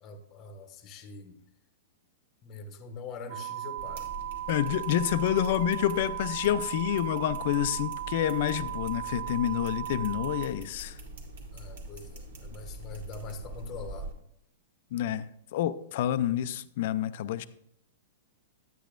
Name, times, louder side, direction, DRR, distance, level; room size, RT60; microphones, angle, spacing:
voice 1, 0.0-1.4 2.4-4.1 11.5-14.1, left 3 dB, 25° left, 7 dB, 0.9 m, -43 dB
sound 1, 3.3-10.5, right 12 dB, 45° right, 0.6 m, -37 dB
sound 2, 3.8-14.1, right 1 dB, 70° right, 1.9 m, -43 dB
voice 2, 4.5-11.0 14.9-17.5, left 11 dB, 55° left, 14 dB, 0.4 m, -28 dB
10.0 x 9.1 x 2.5 m, 0.74 s
hypercardioid pair, 150°, 0 cm